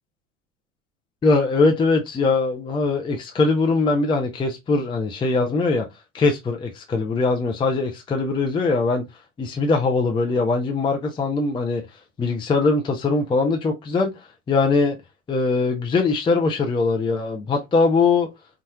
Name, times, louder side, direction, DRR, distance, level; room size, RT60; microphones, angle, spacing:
voice 1, 1.2-5.9 6.1-9.0 9.4-11.8 12.2-14.1 14.5-15.0 15.3-18.3, left 3 dB, 10° left, 0.6 m, -21 dB
4.2 x 2.5 x 3.4 m
figure-of-eight pair, 80°, 44 cm